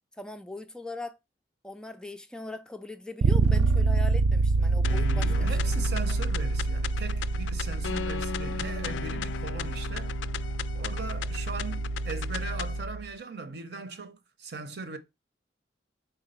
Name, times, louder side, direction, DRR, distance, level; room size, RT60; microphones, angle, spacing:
voice 1, 0.2-1.2 1.6-5.6, left 2 dB, 5° left, 0.3 m, -40 dB
Bass guitar, 3.2-13.0, right 3 dB, 85° right, 0.4 m, -27 dB
sound 1, 4.8-12.8, left 8 dB, 80° left, 0.3 m, -37 dB
voice 2, 4.9-10.2 10.7-15.0, right 4 dB, 60° right, 0.8 m, -39 dB
4.7 x 3.9 x 5.6 m
head